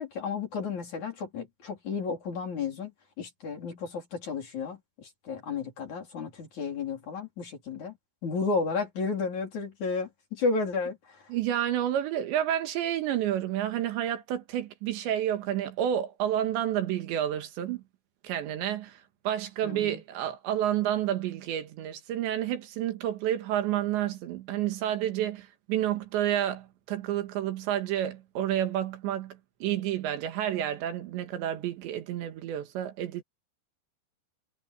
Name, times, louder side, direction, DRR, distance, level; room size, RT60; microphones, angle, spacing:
voice 1, 0.0-2.9 3.2-7.9 8.2-11.2 19.6-20.0, left 4 dB, 45° left, 5.1 m, -32 dB
voice 2, 11.3-17.8 18.2-19.0 19.3-33.2, right 11 dB, 85° right, 4.1 m, -30 dB
omnidirectional pair, 5.0 m